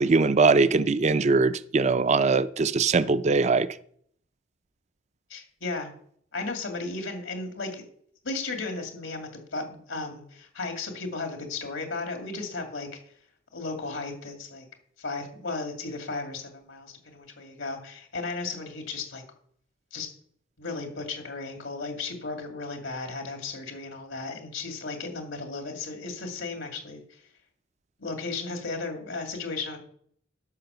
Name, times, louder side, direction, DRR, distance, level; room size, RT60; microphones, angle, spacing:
voice 1, 0.0-3.7, right 4 dB, 35° right, 0.4 m, -21 dB
voice 2, 5.3-5.9 6.3-7.8 8.2-12.9 13.5-14.7 15.0-19.2 19.9-20.1 20.6-27.2 28.0-29.8, left 3 dB, 85° left, 2.3 m, -35 dB
12.0 x 5.8 x 6.8 m
head